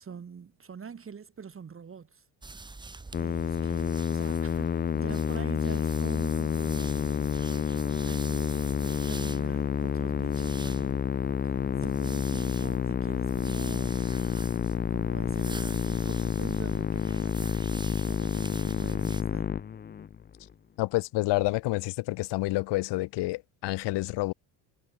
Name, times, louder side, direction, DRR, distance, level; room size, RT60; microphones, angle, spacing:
voice 1, 0.0-2.2 3.2-7.2 7.4-11.0 11.4-14.1 14.9-17.6 18.1-19.6, right 6 dB, 30° right, 2.1 m, -45 dB
sound 1, 2.4-19.2, right 3 dB, 10° right, 0.7 m, -45 dB
Musical instrument, 3.1-20.3, left 8 dB, 25° left, 0.4 m, -29 dB
voice 2, 20.8-24.3, left 19 dB, 65° left, 0.6 m, -28 dB
cardioid pair, 130°, 45 cm